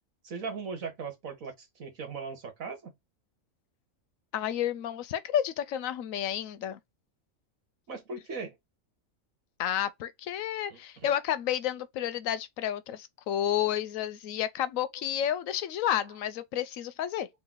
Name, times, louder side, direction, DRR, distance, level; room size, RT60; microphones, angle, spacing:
voice 1, 0.2-2.9 7.9-8.6 10.7-11.1, right 4 dB, 80° right, 1.9 m, -39 dB
voice 2, 4.3-6.8 9.6-17.3, left 10 dB, 80° left, 1.0 m, -31 dB
4.1 x 2.7 x 3.7 m
omnidirectional pair, 1.4 m